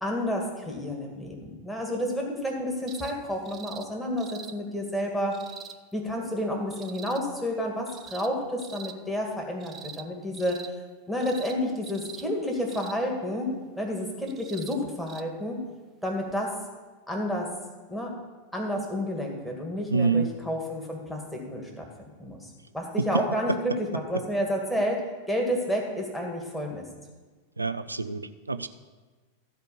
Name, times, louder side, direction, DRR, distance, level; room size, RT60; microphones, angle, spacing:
voice 1, 0.0-5.4 5.9-10.6 11.1-15.6 16.0-16.6 17.1-17.5 17.9-18.1 18.5-21.9 22.2-26.9, equal, 5° left, -1 dB, 2.3 m, -30 dB
sound 1, 2.9-3.2 3.5-3.9 4.2-4.5 5.3-5.8 6.7-7.2 7.9-8.3 8.6-9.0 9.6-10.1 10.3-10.7 11.2-11.6 11.8-12.2 12.7-13.0 14.3-14.8 15.1-15.2 16.3-16.4, right 7 dB, 25° right, 0.6 m, -44 dB
voice 2, 19.9-20.3 27.6-28.7, right 4 dB, 80° right, 11 dB, 0.5 m, -27 dB
14.0 x 5.2 x 7.1 m, 1.3 s
figure-of-eight pair, 90°, 0 cm